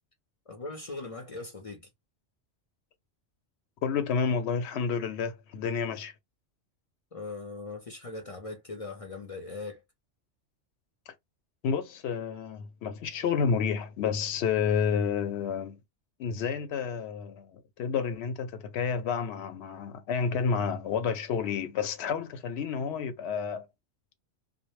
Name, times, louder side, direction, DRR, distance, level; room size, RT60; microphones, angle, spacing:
voice 1, 0.5-1.9 7.1-9.8, left 3 dB, 45° left, 0.5 m, -40 dB
voice 2, 3.8-6.1 11.1-11.2 11.6-15.8 16.2-23.7, left 6 dB, 70° left, 0.8 m, -30 dB
2.0 x 2.0 x 3.0 m
omnidirectional pair, 1.2 m